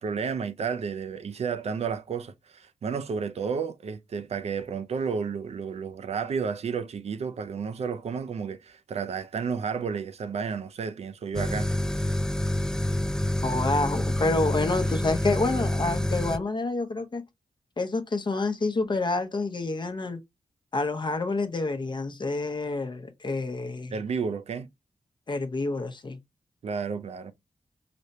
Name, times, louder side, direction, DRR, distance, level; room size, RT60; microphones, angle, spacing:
voice 1, 0.0-11.7 23.9-24.7 26.6-27.3, right 6 dB, 65° right, 0.4 m, -31 dB
sound 1, 11.3-16.4, left 1 dB, 5° left, 0.3 m, -27 dB
voice 2, 13.4-17.2 17.8-20.2 20.7-23.9 25.3-26.2, left 3 dB, 40° left, 0.7 m, -28 dB
5.0 x 2.1 x 2.7 m
cardioid pair, 45°, 12 cm